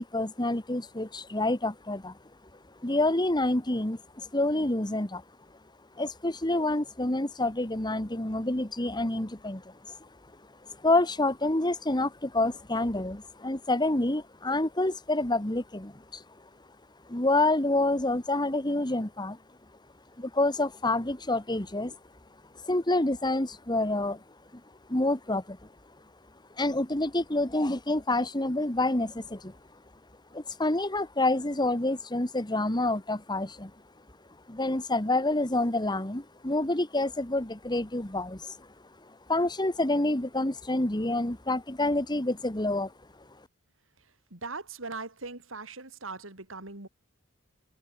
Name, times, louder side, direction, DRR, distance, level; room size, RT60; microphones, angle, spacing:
voice 1, 0.0-2.2 2.8-5.2 6.0-10.1 10.6-16.2 17.1-19.4 20.2-22.0 22.6-24.2 24.9-25.6 26.6-29.6 30.3-33.7 34.5-38.7 39.0-42.9, left 2 dB, 20° left, 2.0 m, -28 dB
voice 2, 44.0-46.9, right 3 dB, 75° right, 4.2 m, -40 dB
head